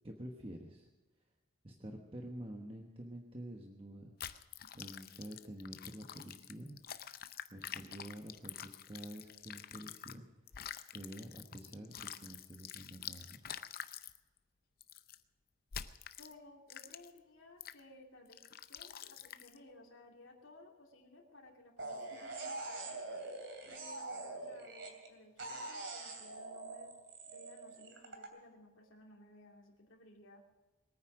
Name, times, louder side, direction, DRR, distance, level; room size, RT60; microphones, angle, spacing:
voice 1, 0.0-0.9 1.6-4.1 4.7-6.8 7.5-10.2 10.9-13.5, right 1 dB, 30° right, 1 dB, 1.2 m, -48 dB
sound 1, 4.2-10.2 10.5-14.2 14.8-15.2 15.7-16.3 16.7-17.2 17.6-17.8 18.3-19.6, left 9 dB, 50° left, 0.6 m, -47 dB
voice 2, 16.2-18.4 18.7-23.0 23.7-26.9 27.3-30.4, left 1 dB, 85° left, 0 dB, 2.6 m, -58 dB
sound 2, 21.8-25.1 25.4-28.3, right 2 dB, 65° right, 2.8 m, -44 dB
21.5 x 9.5 x 6.2 m, 1.2 s
head